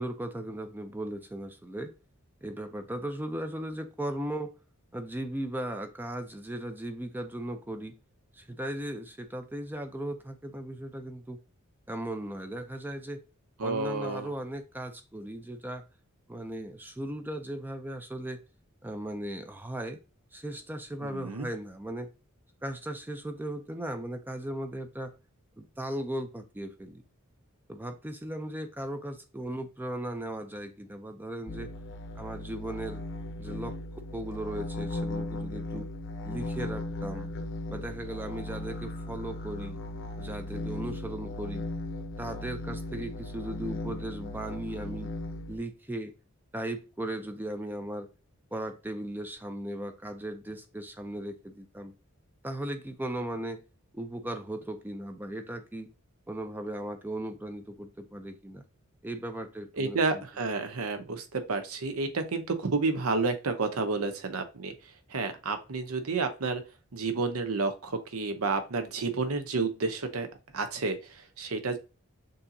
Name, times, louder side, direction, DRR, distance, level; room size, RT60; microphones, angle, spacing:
voice 1, 0.0-1.9 2.4-4.5 4.9-7.9 8.3-11.4 11.9-13.2 13.6-15.8 16.3-18.4 18.8-20.0 20.3-22.1 22.6-25.1 25.6-27.0 27.7-31.7 32.2-33.0 33.4-35.9 36.2-37.3 37.7-39.8 40.2-41.6 42.2-45.1 45.5-46.1 46.5-48.1 48.5-51.9 52.4-53.6 53.9-55.9 56.3-58.6 59.0-60.2, right 1 dB, 10° right, 0.4 m, -37 dB
voice 2, 13.6-14.3 21.0-21.5 59.8-64.7 65.1-66.6 66.9-70.3 70.5-71.8, right 3 dB, 80° right, 0.8 m, -30 dB
sound 1, 31.5-45.6, left 2 dB, 60° left, 0.8 m, -37 dB
6.5 x 2.8 x 2.7 m
head